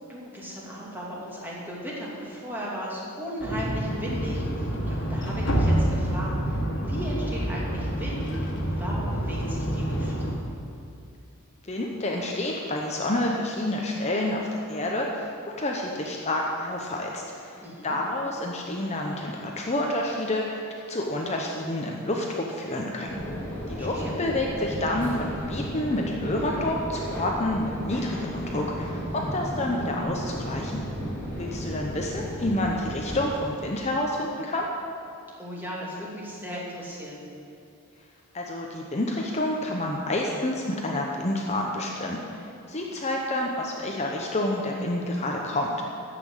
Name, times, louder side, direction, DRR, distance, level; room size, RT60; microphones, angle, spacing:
voice 1, 0.1-10.1 17.6-18.0 23.7-24.1 35.4-37.2, equal, 10° right, -5 dB, 2.6 m, -36 dB
sound 1, 3.4-10.3, right 1 dB, 55° left, 1.9 m, -27 dB
voice 2, 11.6-20.6 20.9-23.2 23.7-30.8 31.4-34.7 38.3-45.7, left 1 dB, 30° left, 0 dB, 0.9 m, -29 dB
sound 2, 23.1-33.2, equal, 10° left, 2.9 m, -34 dB
13.5 x 6.0 x 7.9 m, 2.6 s
head